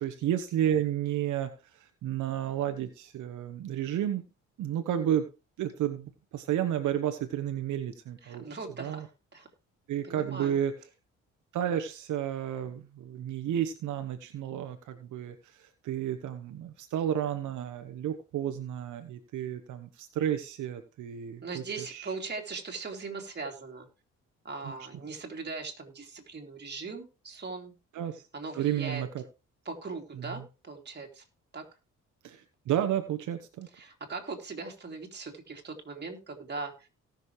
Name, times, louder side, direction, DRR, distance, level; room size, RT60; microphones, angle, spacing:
voice 1, 0.0-4.2 4.6-5.3 5.6-8.5 8.8-9.0 9.9-10.7 11.5-22.1 24.6-24.7 27.9-28.3 28.5-29.2 30.2-30.4 32.2-33.7, right 10 dB, 75° right, 7 dB, 1.1 m, -32 dB
voice 2, 8.2-9.5 10.0-10.6 21.4-23.9 24.4-27.7 28.3-29.0 29.6-31.2 31.5-31.6 33.7-36.9, right 4 dB, 35° right, 2 dB, 3.1 m, -40 dB
18.0 x 6.6 x 3.2 m, 0.30 s
cardioid pair, 90°, 30 cm